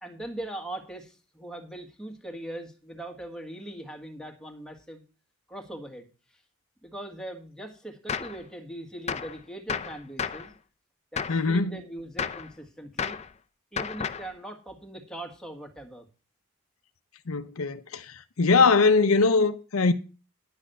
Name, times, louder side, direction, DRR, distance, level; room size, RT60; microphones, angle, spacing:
voice 1, 0.0-5.0 5.5-6.1 6.8-10.5 11.1-13.2 13.7-16.1, right 1 dB, 5° left, 1.7 m, -40 dB
Gunshot gunfire, 8.1-8.4 9.1-9.4 9.7-10.5 11.2-11.5 12.2-12.5 13.0-13.3 13.8-14.3, left 6 dB, 30° left, 0.5 m, -32 dB
voice 2, 11.3-11.7 17.3-18.1 18.4-19.9, left 4 dB, 75° left, 0.7 m, -21 dB
10.5 x 6.4 x 6.6 m
head